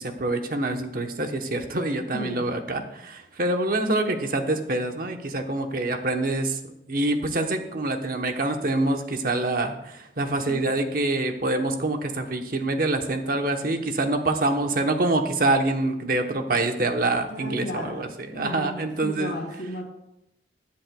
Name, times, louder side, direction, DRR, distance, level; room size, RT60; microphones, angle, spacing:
voice 1, 0.0-6.6 6.9-19.4, right 2 dB, 50° right, 5 dB, 1.0 m, -26 dB
voice 2, 2.1-2.5 10.5-10.7 17.3-19.8, equal, 85° left, -5 dB, 2.2 m, -35 dB
21.0 x 7.5 x 2.3 m, 0.83 s
head